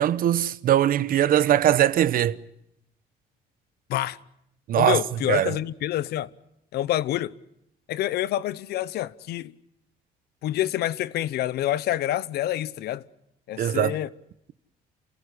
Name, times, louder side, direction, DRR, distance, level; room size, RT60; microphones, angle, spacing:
voice 1, 0.0-2.4 4.7-5.0 5.3-5.6 13.6-14.0, right 11 dB, 60° right, 0.9 m, -21 dB
voice 2, 4.7-6.3 6.7-7.3 7.9-9.5 10.4-13.0 13.5-14.1, left 13 dB, 75° left, 0.9 m, -27 dB
28.5 x 16.0 x 9.8 m
cardioid pair, 110°, 17 cm